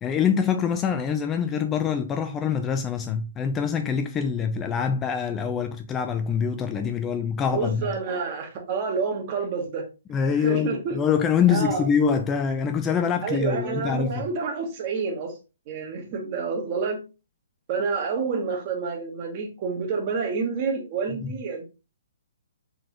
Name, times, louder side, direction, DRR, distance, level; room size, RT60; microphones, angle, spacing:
voice 1, 0.0-7.9 10.1-14.3 21.2-21.3, left 7 dB, 15° left, 0.3 m, -25 dB
voice 2, 7.5-9.9 10.3-11.0 11.5-11.8 13.2-15.4 15.7-17.0 17.7-21.6, right 5 dB, 35° right, 1.1 m, -28 dB
3.8 x 3.5 x 2.9 m
figure-of-eight pair, 125°, 0 cm